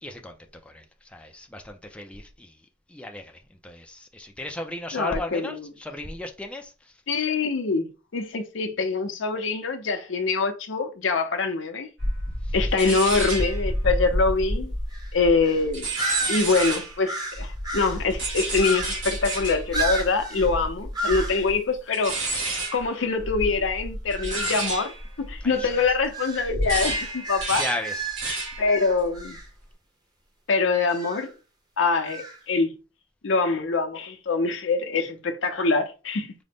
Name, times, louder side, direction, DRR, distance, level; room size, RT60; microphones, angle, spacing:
voice 1, 0.0-0.4 0.6-2.6 2.9-6.9 12.4-12.5 25.4-25.9 27.5-28.1, left 1 dB, 5° left, 0.4 m, -36 dB
voice 2, 4.9-5.7 7.1-7.9 8.1-11.9 12.5-14.7 15.1-15.9 16.3-22.4 22.7-24.9 25.2-27.6 28.6-29.4 30.5-31.3 31.8-32.7 33.2-36.3, left 4 dB, 70° left, 0.6 m, -24 dB
sound 1, 12.0-17.0 17.3-26.0 26.4-28.7 29.0-29.4, right 1 dB, 75° right, 1.5 m, -30 dB
sound 2, 14.9-15.1 15.4-15.6 16.0-18.1 18.6-19.2 19.7-20.5 20.9-21.4 22.0-22.3 24.1-24.7 25.5-29.5 30.9-31.3 32.0-32.4, right 2 dB, 20° right, 0.9 m, -33 dB
3.8 x 2.1 x 3.4 m
head